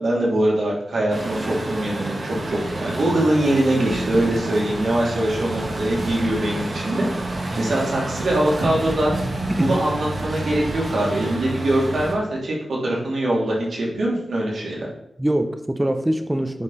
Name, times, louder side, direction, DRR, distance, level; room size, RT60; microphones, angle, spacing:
voice 1, 0.0-7.1 7.5-9.1 9.6-14.9, right 1 dB, 70° right, -4 dB, 2.7 m, -22 dB
Truck, 1.1-12.1, right 2 dB, 45° right, 1.5 m, -29 dB
voice 2, 15.2-16.6, right 1 dB, 10° right, 8 dB, 0.7 m, -23 dB
10.5 x 4.4 x 4.1 m, 0.77 s
wide cardioid pair, 100°, 0 cm